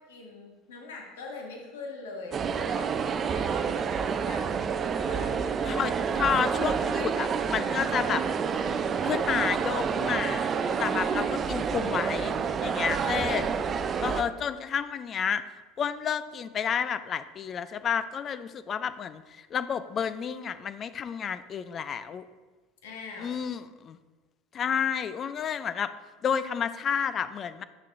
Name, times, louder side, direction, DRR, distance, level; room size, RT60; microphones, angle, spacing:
voice 1, 0.0-2.9 3.3-4.5 5.1-5.8 12.8-13.5 22.8-23.4, left 3 dB, 85° left, -1 dB, 1.6 m, -43 dB
sound 1, 2.3-14.2, right 6 dB, 35° right, 0.5 m, -28 dB
voice 2, 5.6-8.2 8.5-8.6 9.0-10.5 10.8-12.3 12.6-13.5 14.0-15.4 15.8-22.3 23.2-24.0 24.5-25.9 26.2-27.6, left 7 dB, 40° left, 13 dB, 0.4 m, -30 dB
9.0 x 6.5 x 2.6 m, 1.3 s
hypercardioid pair, 90°, 0 cm